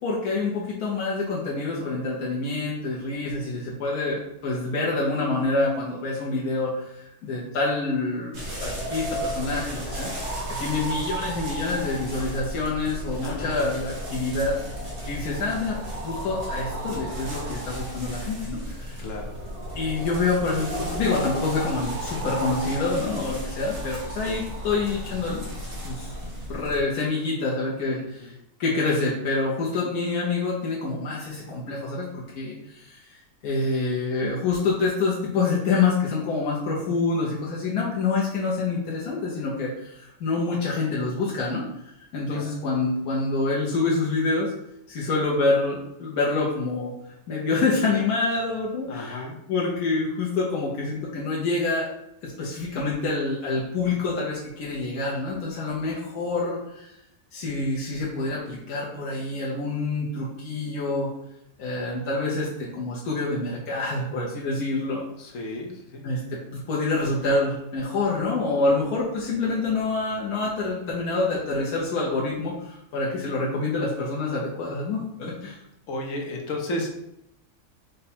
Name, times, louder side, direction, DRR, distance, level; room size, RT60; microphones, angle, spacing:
voice 1, 0.0-10.1 10.5-14.6 15.1-19.0 19.7-25.5 25.8-28.3 28.6-44.5 44.9-46.9 47.3-51.9 52.2-56.9 57.3-61.1 61.6-65.1 66.0-75.6, left 3 dB, 85° left, -5 dB, 1.3 m, -27 dB
sound 1, 8.3-26.8, equal, 60° right, 1.6 m, -33 dB
voice 2, 13.2-13.6 19.0-19.3 27.9-28.4 42.3-42.4 48.9-49.4 65.2-66.0 75.9-76.9, left 1 dB, 65° left, 1 dB, 1.1 m, -33 dB
5.1 x 2.2 x 4.3 m, 0.82 s
omnidirectional pair, 1.6 m